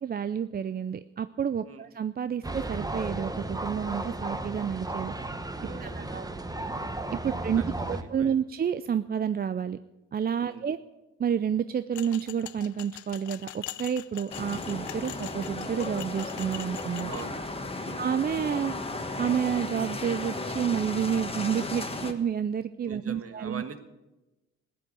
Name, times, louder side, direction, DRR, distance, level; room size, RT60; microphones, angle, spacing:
voice 1, 0.0-5.1 5.8-6.2 7.1-9.8 10.1-10.8 11.2-17.1 18.0-18.7 19.2-23.6, right 8 dB, 30° right, 13 dB, 0.5 m, -30 dB
sound 1, 2.4-8.0, right 2 dB, 10° right, 1.1 m, -34 dB
voice 2, 5.6-6.4 7.2-8.4 10.4-10.6 17.1-17.4 17.8-18.0 22.8-23.8, right 6 dB, 50° right, 8 dB, 1.7 m, -43 dB
sound 2, 11.9-17.2, left 14 dB, 75° left, 0.6 m, -43 dB
sound 3, 14.3-22.1, left 2 dB, 20° left, 1.5 m, -35 dB
15.0 x 9.2 x 8.3 m, 1.0 s
cardioid pair, 90°, 30 cm